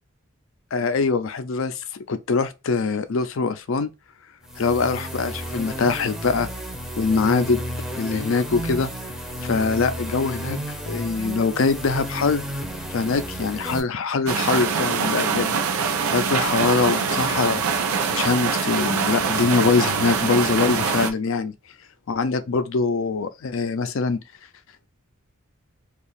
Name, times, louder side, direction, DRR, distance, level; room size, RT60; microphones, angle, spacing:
voice 1, 0.7-3.9 4.6-6.5 7.0-7.6 8.0-8.9 9.4-10.6 10.9-12.4 12.9-15.5 16.1-17.6 18.1-21.5 22.1-24.2, left 4 dB, 65° left, 0.4 m, -23 dB
sound 1, 4.4-13.8, equal, ahead, 0.6 m, -32 dB
sound 2, 14.3-21.1, right 5 dB, 90° right, 0.6 m, -24 dB
2.8 x 2.4 x 4.0 m
head